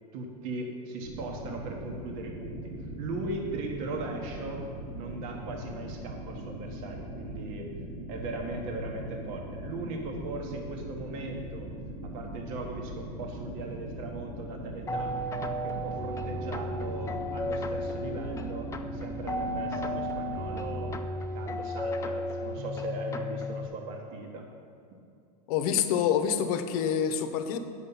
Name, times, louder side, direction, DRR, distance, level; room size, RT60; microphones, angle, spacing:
voice 1, 0.1-2.7 3.0-4.6 4.9-7.7 8.1-11.7 12.0-15.1 15.6-20.9 21.3-24.5 24.9-25.0, right 2 dB, 60° right, 1 dB, 1.3 m, -38 dB
sound 1, 1.0-21.0, right 1 dB, 80° right, 1.8 m, -40 dB
sound 2, 14.9-23.7, equal, 15° left, 0.5 m, -34 dB
voice 2, 25.5-27.6, left 8 dB, 65° left, 9 dB, 0.8 m, -27 dB
8.7 x 6.4 x 5.5 m, 2.5 s
hypercardioid pair, 115°, 20 cm